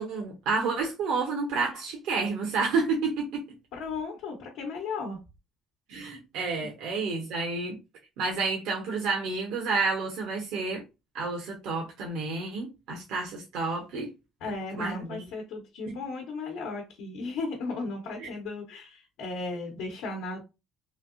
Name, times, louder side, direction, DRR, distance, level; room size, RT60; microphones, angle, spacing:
voice 1, 0.0-3.4 5.9-7.8 8.2-10.8 11.1-14.1 14.7-15.2 18.2-18.3, right 4 dB, 85° right, 0.9 m, -30 dB
voice 2, 3.7-5.2 6.6-6.7 14.4-20.4, left 3 dB, 80° left, 0.9 m, -35 dB
3.2 x 2.7 x 2.5 m
cardioid pair, 110°, 0 cm